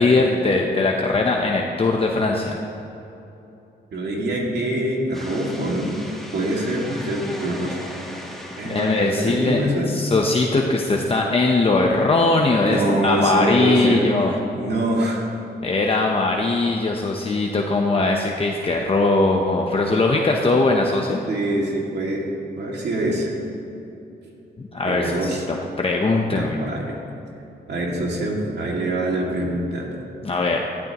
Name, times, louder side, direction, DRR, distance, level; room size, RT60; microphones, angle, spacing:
voice 1, 0.0-2.6 8.6-14.3 15.6-21.2 24.6-26.6 30.2-30.6, left 3 dB, 30° left, 0 dB, 0.8 m, -20 dB
voice 2, 3.9-6.0 6.3-7.8 8.6-9.9 12.6-15.2 21.3-22.3 22.6-23.4 24.8-25.4 26.3-27.0 27.7-29.9, right 1 dB, 70° right, -2 dB, 2.3 m, -24 dB
sound 1, 5.1-10.3, left 1 dB, ahead, 1.5 m, -38 dB
14.0 x 12.5 x 3.0 m, 2.9 s
cardioid pair, 100°, 18 cm